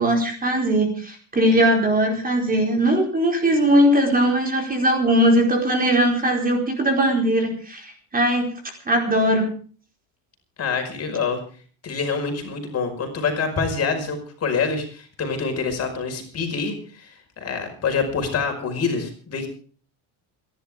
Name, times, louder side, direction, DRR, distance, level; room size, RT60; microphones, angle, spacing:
voice 1, 0.0-8.5 8.9-9.5, right 1 dB, 20° right, 2 dB, 4.6 m, -20 dB
voice 2, 10.6-11.4 11.8-19.5, left 5 dB, 35° left, 4 dB, 5.4 m, -26 dB
28.5 x 11.5 x 3.6 m, 0.41 s
cardioid pair, 145°, 44 cm